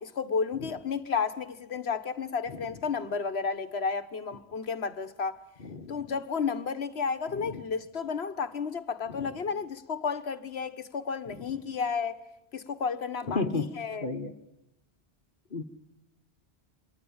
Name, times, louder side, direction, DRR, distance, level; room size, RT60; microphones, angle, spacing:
voice 1, 0.0-5.4 5.9-12.2 12.5-14.1, left 5 dB, 75° left, 1.5 m, -32 dB
voice 2, 5.6-6.0 7.4-7.6 9.1-9.3 13.3-13.7 14.0-14.3 15.5-15.6, left 3 dB, 55° left, 1.4 m, -33 dB
28.5 x 23.5 x 8.7 m
omnidirectional pair, 1.1 m